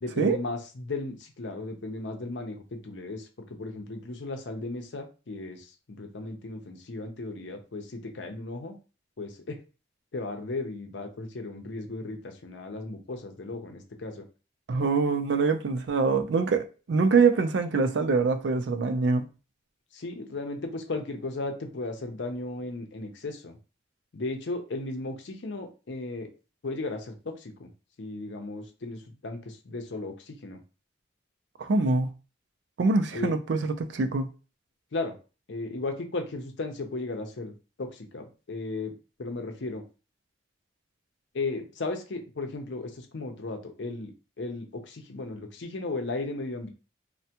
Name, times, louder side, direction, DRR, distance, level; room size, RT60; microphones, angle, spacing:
voice 1, 0.0-8.8 9.2-9.6 10.1-14.3 19.9-23.6 24.1-26.3 26.6-27.7 28.0-30.6 33.1-33.3 34.9-35.2 35.5-38.9 39.2-39.8 41.3-46.7, left 2 dB, 75° left, 0.6 m, -35 dB
voice 2, 14.7-19.2 31.6-32.1 32.8-34.3, right 4 dB, 70° right, 0.4 m, -24 dB
3.3 x 2.1 x 2.8 m
head